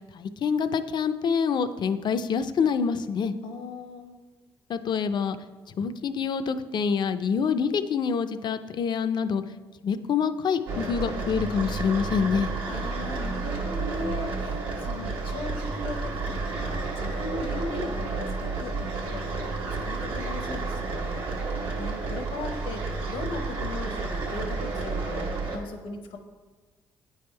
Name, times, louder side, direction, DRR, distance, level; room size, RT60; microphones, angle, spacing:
voice 1, 0.1-3.3 4.7-5.4 5.8-9.4 9.8-12.5, left 6 dB, 55° left, 11 dB, 0.4 m, -26 dB
voice 2, 3.4-4.1 12.7-21.3 21.8-26.2, left 3 dB, 75° left, 6 dB, 0.8 m, -38 dB
sound 1, 10.7-25.6, right 3 dB, 85° right, 1.1 m, -31 dB
8.7 x 3.5 x 4.4 m, 1.3 s
supercardioid pair, 75°, 9 cm